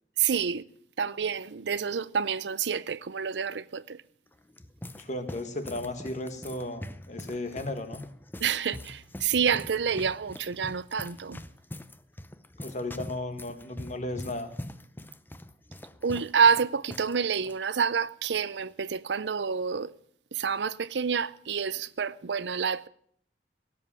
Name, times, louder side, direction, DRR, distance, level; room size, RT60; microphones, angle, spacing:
voice 1, 0.2-0.6 1.0-4.0 8.4-11.4 16.0-19.9 20.3-22.9, right 6 dB, 80° right, 0.6 m, -28 dB
sound 1, 4.3-17.2 17.4-17.6 18.3-18.6, left 1 dB, 10° left, 0.6 m, -43 dB
voice 2, 4.9-8.0 12.6-14.5, left 1 dB, 45° left, 1.8 m, -35 dB
17.5 x 7.7 x 8.9 m
head